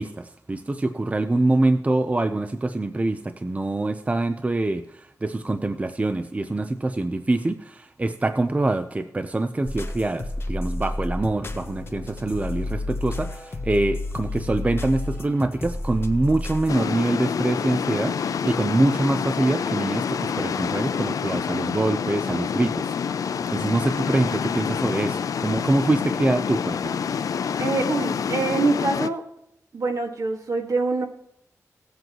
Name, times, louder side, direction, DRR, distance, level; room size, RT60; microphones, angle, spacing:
voice 1, 0.0-27.0, right 2 dB, 25° right, 10 dB, 0.6 m, -25 dB
sound 1, 9.6-16.8, left 2 dB, 40° left, 1.2 m, -31 dB
sound 2, 16.7-29.1, left 7 dB, 80° left, 0.4 m, -27 dB
voice 2, 27.6-29.2 29.7-31.1, right 3 dB, 70° right, 4 dB, 1.9 m, -25 dB
18.0 x 7.8 x 3.0 m, 0.77 s
wide cardioid pair, 95°, 6 cm